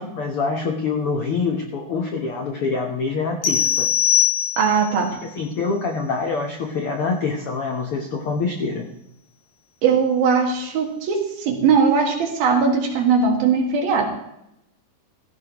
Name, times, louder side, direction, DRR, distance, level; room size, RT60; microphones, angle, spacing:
voice 1, 0.0-3.9 5.3-8.9, left 4 dB, 90° left, 3 dB, 1.2 m, -25 dB
sound 1, 3.4-5.0, left 10 dB, 60° left, 2.8 m, -20 dB
voice 2, 4.6-5.2 9.8-14.1, right 5 dB, 75° right, 2 dB, 3.7 m, -19 dB
16.5 x 14.5 x 3.0 m, 0.81 s
omnidirectional pair, 4.3 m